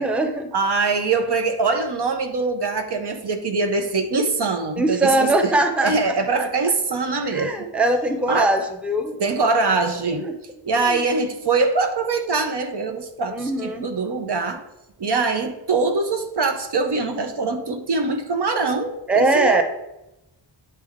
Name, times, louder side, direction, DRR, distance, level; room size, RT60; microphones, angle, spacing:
voice 1, 0.0-0.5 4.8-5.9 6.3-6.4 7.3-9.1 10.2-10.3 10.8-11.0 13.3-13.9 19.1-19.6, right 2 dB, 5° right, 4 dB, 0.5 m, -21 dB
voice 2, 0.5-5.5 5.8-7.5 8.3-8.6 9.2-10.3 10.6-14.6 15.0-19.6, right 3 dB, 65° right, 6 dB, 0.7 m, -23 dB
9.0 x 3.4 x 3.5 m, 0.91 s
wide cardioid pair, 90°, 45 cm